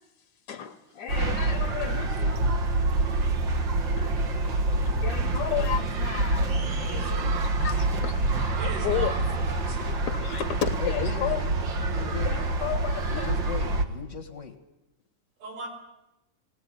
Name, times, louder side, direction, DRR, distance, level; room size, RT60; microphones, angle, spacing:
voice 1, 0.5-2.4 4.0-4.2 4.8-9.1 10.1-11.4 12.0-13.4, left 10 dB, 65° left, 7 dB, 2.2 m, -33 dB
sound 1, 1.1-13.8, right 2 dB, 45° right, 1.6 m, -26 dB
voice 2, 8.6-10.1 15.4-15.7, right 3 dB, 85° right, 2 dB, 6.0 m, -38 dB
voice 3, 10.8-11.5 11.9-12.6 13.1-14.5, left 7 dB, 35° left, 6 dB, 1.4 m, -37 dB
19.5 x 18.0 x 9.8 m, 0.94 s
omnidirectional pair, 3.6 m